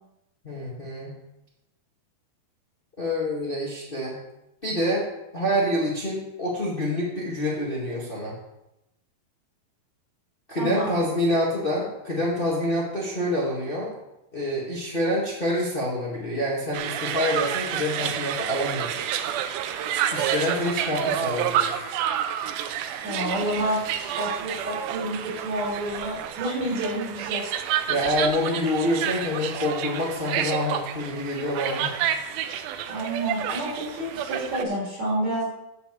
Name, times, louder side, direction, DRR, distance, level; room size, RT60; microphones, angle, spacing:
voice 1, 0.4-1.2 3.0-4.2 4.6-5.1 5.3-8.4 10.5-13.9 14.3-19.0 20.1-21.8 27.9-31.9, left 1 dB, 35° left, -4 dB, 0.8 m, -27 dB
voice 2, 10.6-11.0 23.0-27.4 32.9-35.5, right 1 dB, 50° right, -5 dB, 4.6 m, -29 dB
sound 1, 16.7-34.6, right 10 dB, 80° right, 2.5 m, -29 dB
8.7 x 6.7 x 7.3 m, 0.90 s
omnidirectional pair, 4.3 m